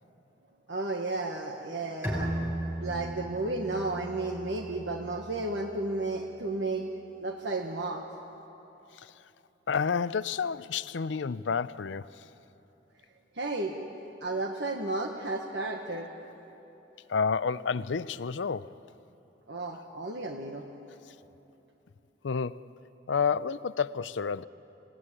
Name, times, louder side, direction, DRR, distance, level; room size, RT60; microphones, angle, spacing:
voice 1, 0.7-2.3 2.7-6.9 7.2-8.0 13.3-13.8 14.2-16.1 19.5-20.6, right 2 dB, 75° right, 1.5 m, -33 dB
Bowed string instrument, 2.0-5.5, right 1 dB, 10° right, 6.7 m, -36 dB
voice 2, 9.7-12.1 17.1-18.7 22.2-22.6 23.1-24.4, left 6 dB, 85° left, 0.5 m, -30 dB
27.0 x 18.0 x 9.8 m
head